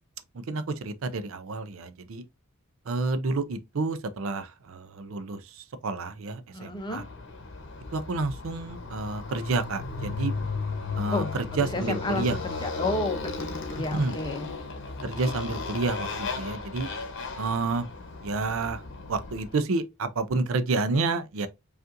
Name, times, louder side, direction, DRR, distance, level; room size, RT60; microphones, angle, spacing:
voice 1, 0.3-2.2 2.9-7.0 7.9-10.3 11.0-12.4 13.9-14.1 15.0-16.9 17.4-17.9 18.2-18.8 19.1-21.5, right 3 dB, 65° right, 0.5 m, -29 dB
voice 2, 6.5-7.1 11.1-11.3 11.7-14.5, left 2 dB, 20° left, 0.6 m, -31 dB
Motorcycle, 6.8-19.5, left 4 dB, 55° left, 0.8 m, -35 dB
5.2 x 2.5 x 2.5 m
head